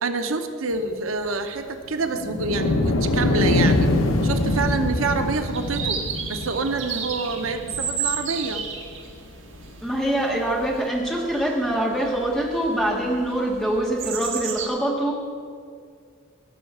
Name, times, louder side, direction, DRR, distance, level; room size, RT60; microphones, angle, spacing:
voice 1, 0.0-3.9 4.2-6.0 6.3-8.6, right 3 dB, 85° right, 7 dB, 0.8 m, -27 dB
sound 1, 2.1-8.5 9.1-9.2 10.6-10.7, left 2 dB, 85° left, 0.8 m, -23 dB
sound 2, 3.7-14.7, right 6 dB, 70° right, 1.4 m, -34 dB
voice 2, 4.3-4.7 9.8-15.2, right 1 dB, 5° left, -2 dB, 1.7 m, -24 dB
16.0 x 5.6 x 6.7 m, 2.2 s
head